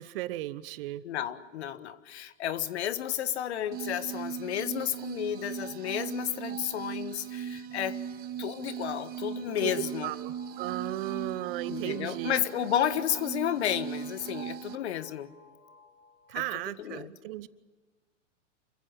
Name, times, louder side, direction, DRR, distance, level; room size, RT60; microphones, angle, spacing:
voice 1, 0.0-1.0 9.6-9.7 10.0-12.4 16.3-17.5, right 15 dB, 50° right, 16 dB, 1.2 m, -35 dB
voice 2, 1.0-8.0 8.4-10.1 11.7-15.3 16.3-16.4 16.8-17.1, left 11 dB, 60° left, 13 dB, 1.6 m, -32 dB
sound 1, 3.7-14.8, right 8 dB, 25° right, 1.1 m, -38 dB
sound 2, 9.0-16.5, left 4 dB, 25° left, 6.1 m, -58 dB
27.5 x 15.5 x 9.7 m, 1.3 s
hypercardioid pair, 110°, 37 cm